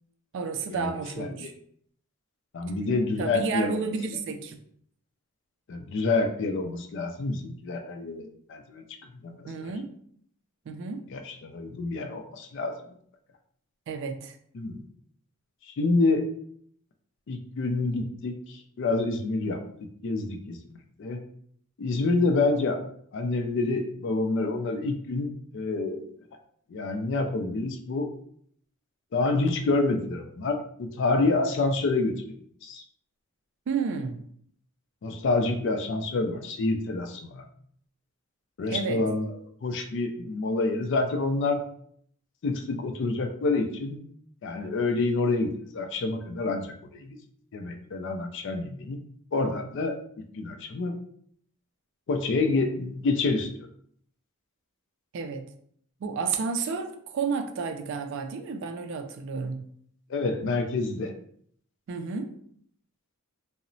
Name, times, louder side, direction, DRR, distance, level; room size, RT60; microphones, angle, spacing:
voice 1, 0.3-1.5 3.2-4.6 9.5-9.9 10.7-11.0 13.9-14.4 33.7-34.2 38.7-39.0 55.1-55.5 56.0-59.6 61.9-62.3, right 5 dB, 55° right, 7 dB, 0.3 m, -31 dB
voice 2, 1.2-1.5 2.5-3.8 5.7-8.8 9.2-9.7 11.1-12.7 14.5-14.8 15.7-16.3 17.3-19.6 20.0-20.6 21.0-21.2 21.8-22.8 23.1-26.1 26.7-28.1 29.1-32.8 35.0-37.4 38.6-39.3 39.6-41.6 42.4-44.0 44.4-47.2 47.5-49.0 49.3-50.0 50.3-50.9 52.1-53.7 60.1-61.1, left 3 dB, 55° left, 6 dB, 0.4 m, -27 dB
2.9 x 2.0 x 2.6 m, 0.64 s
head